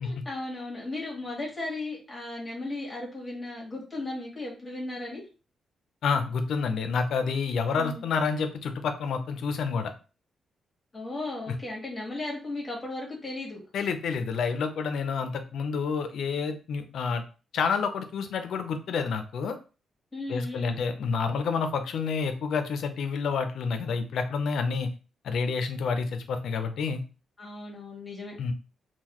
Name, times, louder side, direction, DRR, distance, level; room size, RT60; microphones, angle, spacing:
voice 1, 0.0-5.2 7.8-8.0 10.9-13.6 20.1-20.8 27.4-28.4, left 2 dB, 20° left, -3 dB, 1.5 m, -36 dB
voice 2, 6.0-9.9 13.7-17.2 17.5-19.6 20.3-24.9 25.2-27.0 28.4-28.5, left 5 dB, 75° left, 7 dB, 0.6 m, -29 dB
3.9 x 2.3 x 3.0 m, 0.33 s
cardioid pair, 130°, 0 cm